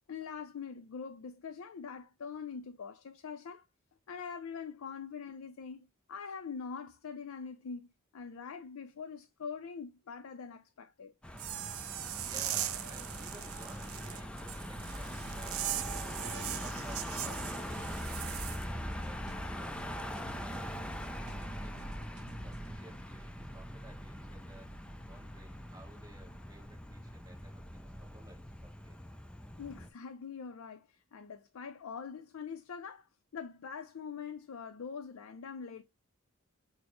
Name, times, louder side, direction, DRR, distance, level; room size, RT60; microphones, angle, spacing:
voice 1, 0.1-3.7 4.1-11.1 29.6-33.1 33.3-35.8, left 6 dB, 85° left, 0.4 m, -43 dB
Car passing by / Engine, 11.2-29.9, equal, 5° left, 0.4 m, -42 dB
sound 1, 11.3-18.7, right 13 dB, 90° right, 0.4 m, -40 dB
voice 2, 12.2-29.0, right 1 dB, 20° right, 1.2 m, -57 dB
sound 2, 14.8-22.8, right 1 dB, 55° right, 0.9 m, -49 dB
6.2 x 2.1 x 3.0 m
head